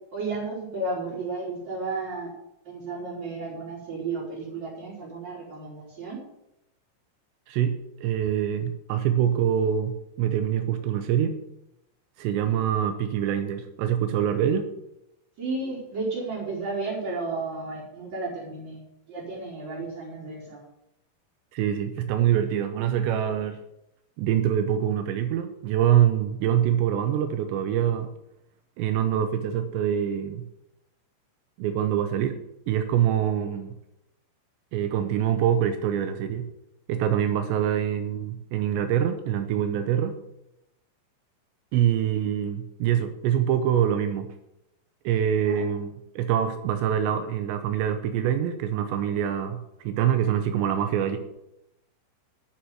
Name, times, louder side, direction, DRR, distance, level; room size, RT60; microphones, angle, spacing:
voice 1, 0.1-2.3 2.7-6.2 15.4-20.6 45.5-45.7, right 3 dB, 40° right, -5 dB, 5.2 m, -33 dB
voice 2, 7.5-11.4 12.2-14.7 21.5-23.6 24.2-28.1 28.8-30.4 31.6-32.4 32.7-33.7 34.7-36.5 36.9-40.2 41.7-44.3 45.0-51.2, right 10 dB, 85° right, 7 dB, 3.0 m, -25 dB
11.0 x 7.2 x 9.3 m, 0.86 s
omnidirectional pair, 5.3 m